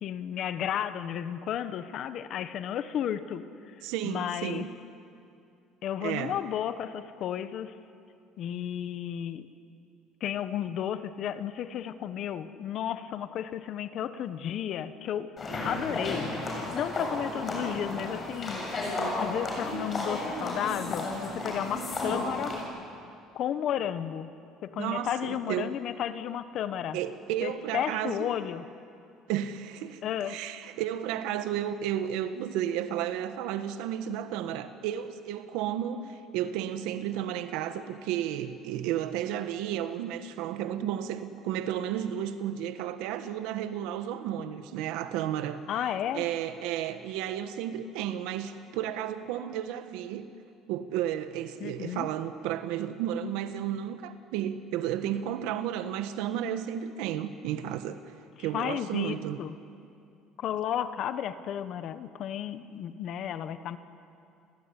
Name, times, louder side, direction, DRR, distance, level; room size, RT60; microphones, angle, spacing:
voice 1, 0.0-3.4 4.0-4.7 5.8-7.7 8.4-9.5 10.2-15.3 15.6-18.6 19.2-22.5 23.3-24.3 24.6-27.0 27.4-28.7 30.0-30.4 45.7-46.2 51.6-52.1 58.4-59.5 60.4-63.8, left 10 dB, 50° left, 12 dB, 1.2 m, -33 dB
voice 2, 3.8-4.7 6.0-6.4 24.8-25.7 26.9-28.3 29.3-50.2 50.7-58.0 58.4-59.4, right 10 dB, 80° right, 9 dB, 1.5 m, -33 dB
sound 1, 15.4-22.6, left 2 dB, 25° left, 7.4 m, -33 dB
29.5 x 20.0 x 10.0 m, 2.5 s
cardioid pair, 140°, 0 cm